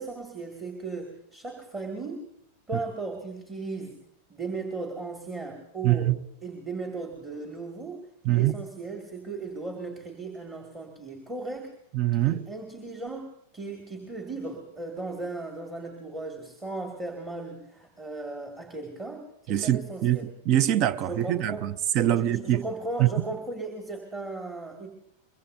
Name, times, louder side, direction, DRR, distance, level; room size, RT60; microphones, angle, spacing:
voice 1, 0.0-2.2 2.7-3.9 4.3-6.1 6.4-11.7 12.1-13.3 13.5-20.3 21.0-21.7 22.1-24.9, right 3 dB, 20° right, 2.1 m, -36 dB
voice 2, 5.8-6.1 8.2-8.6 11.9-12.4 19.5-22.6 23.0-23.1, right 13 dB, 40° right, 0.5 m, -24 dB
23.5 x 22.5 x 2.7 m
figure-of-eight pair, 90°, 0 cm